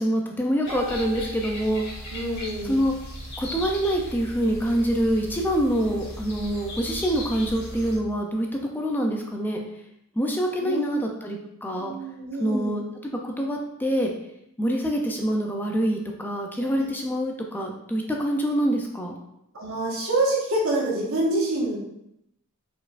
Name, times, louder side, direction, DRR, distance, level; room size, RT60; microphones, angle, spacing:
voice 1, 0.0-1.8 2.6-2.9 3.4-8.5 8.7-9.6 10.2-11.9 12.4-12.8 13.2-14.1 14.6-19.2, equal, 10° left, 1 dB, 0.4 m, -25 dB
sound 1, 0.6-8.0, equal, 50° left, 1.7 m, -37 dB
Harp, 0.7-2.5, right 3 dB, 40° right, 1.2 m, -41 dB
voice 2, 2.1-2.8 10.6-10.9 11.8-12.8 16.7-16.9 19.5-21.8, right 2 dB, 70° right, -3 dB, 1.3 m, -26 dB
4.6 x 4.4 x 2.5 m, 0.79 s
head